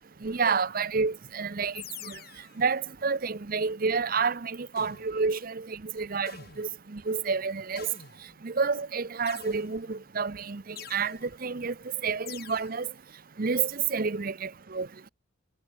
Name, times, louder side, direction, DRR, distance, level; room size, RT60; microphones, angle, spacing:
voice 1, 0.2-2.2 2.6-7.9 8.4-11.7 12.0-12.9 13.4-14.9, right 5 dB, 45° right, 0.7 m, -29 dB
sound 1, 1.7-2.6 4.8-5.3 6.3-6.8 7.8-8.5 9.3-10.0 10.8-11.3 12.3-12.8, left 8 dB, 50° left, 3.1 m, -46 dB
head